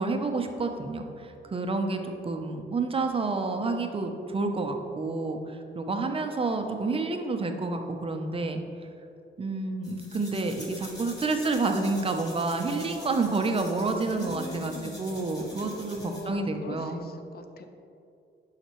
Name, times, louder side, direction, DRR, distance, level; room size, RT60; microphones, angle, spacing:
voice 1, 0.0-8.6 9.4-17.0, right 3 dB, 30° right, 5 dB, 0.6 m, -29 dB
sound 1, 9.8-16.3, left 1 dB, 20° left, 1.7 m, -46 dB
voice 2, 14.1-15.0 15.6-15.7 16.0-17.7, left 4 dB, 50° left, 7 dB, 0.6 m, -41 dB
11.0 x 5.8 x 3.1 m, 2.6 s
wide cardioid pair, 155°, 20 cm